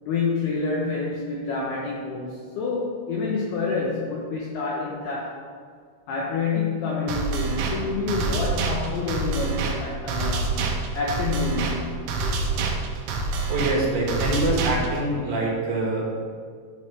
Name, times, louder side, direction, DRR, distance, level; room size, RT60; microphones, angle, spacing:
voice 1, 0.0-5.4 6.1-10.6 10.9-11.9, left 4 dB, 80° left, -3 dB, 2.4 m, -28 dB
sound 1, 7.1-15.1, right 3 dB, 85° right, 3.7 m, -27 dB
voice 2, 13.5-16.2, right 2 dB, 70° right, -3 dB, 3.7 m, -25 dB
14.0 x 6.2 x 3.3 m, 2.1 s
omnidirectional pair, 5.8 m